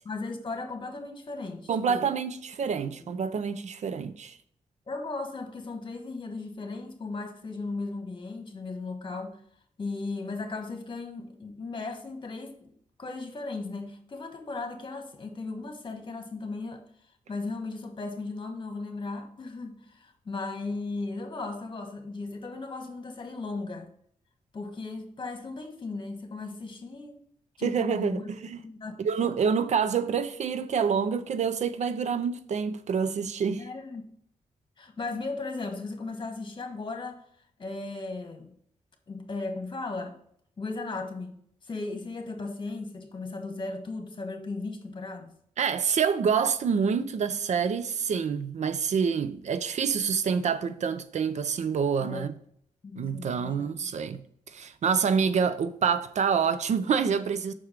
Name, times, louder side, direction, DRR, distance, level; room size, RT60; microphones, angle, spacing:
voice 1, 0.0-2.1 2.6-3.1 4.9-9.4 9.8-12.7 13.0-16.8 17.3-23.9 24.5-27.2 27.6-28.9 29.2-29.3 33.6-34.0 34.8-37.2 37.6-38.5 39.1-40.2 40.6-45.3 52.0-52.3 52.8-53.9, left 3 dB, 40° left, 1.3 m, -36 dB
voice 2, 1.7-4.4 27.6-28.6 29.0-33.6 45.6-52.3 53.0-54.2 54.5-57.5, right 6 dB, 65° right, 0.5 m, -27 dB
6.1 x 4.6 x 5.0 m
cardioid pair, 95°, 13 cm